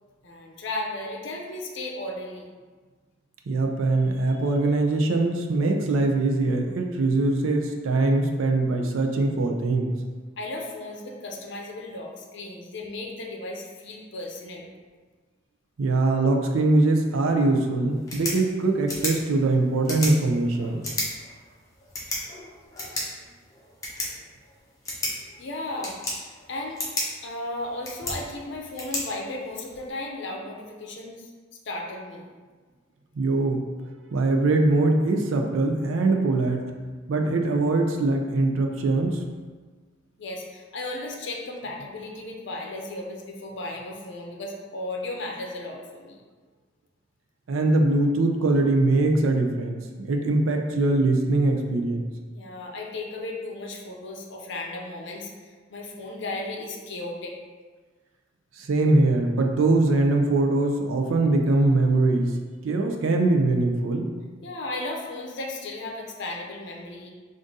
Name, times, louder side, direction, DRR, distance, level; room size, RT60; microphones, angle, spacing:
voice 1, 0.2-2.5 10.4-14.6 25.1-26.8 27.2-31.3 31.6-32.3 40.2-46.2 52.3-57.3 64.4-67.1, left 2 dB, 60° left, 1 dB, 0.6 m, -35 dB
voice 2, 3.5-9.9 15.8-20.8 33.2-33.7 34.1-36.7 37.1-39.2 47.5-52.1 58.6-62.3 62.6-64.1, right 2 dB, 80° right, 3 dB, 0.4 m, -22 dB
sound 1, 17.9-29.9, left 1 dB, 15° left, 0.8 m, -35 dB
3.6 x 2.5 x 3.9 m, 1.4 s
head